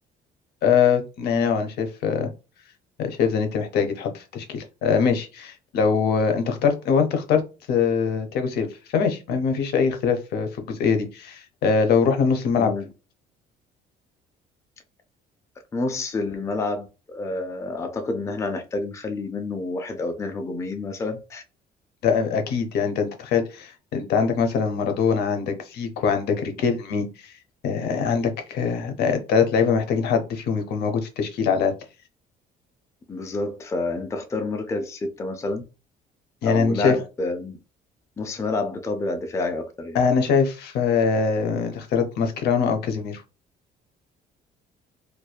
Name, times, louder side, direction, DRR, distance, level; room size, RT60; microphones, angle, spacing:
voice 1, 0.6-2.3 3.0-7.4 7.7-12.7 22.0-27.3 27.6-31.7 36.4-37.0 39.9-43.2, left 6 dB, 75° left, 0.6 m, -23 dB
voice 2, 12.6-12.9 15.7-21.4 33.1-35.6 36.4-37.6 38.2-40.0, left 3 dB, 15° left, 0.4 m, -29 dB
2.5 x 2.2 x 2.2 m
cardioid pair, 110°, 17 cm